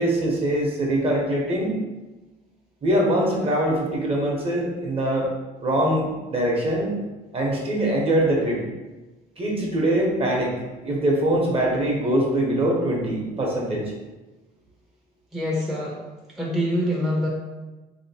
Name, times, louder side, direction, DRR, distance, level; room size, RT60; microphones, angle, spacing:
voice 1, 0.0-1.8 2.8-5.3 5.6-7.0 7.3-8.6 9.4-10.6 10.8-13.9, right 1 dB, 35° right, -1 dB, 0.9 m, -23 dB
voice 2, 15.3-16.0 16.3-17.3, equal, ahead, -4 dB, 0.6 m, -25 dB
3.7 x 2.8 x 2.8 m, 1.1 s
cardioid pair, 110°, 17 cm